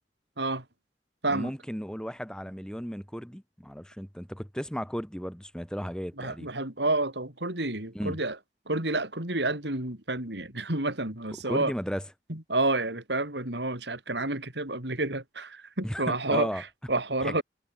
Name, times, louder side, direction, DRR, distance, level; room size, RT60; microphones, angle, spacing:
voice 1, 1.3-6.5 7.9-8.2 11.5-12.0 15.8-16.6 17.2-17.4, equal, 5° left, 4.5 m, -35 dB
voice 2, 6.2-8.4 8.7-11.7 12.3-17.4, right 2 dB, 80° right, 5.2 m, -29 dB
head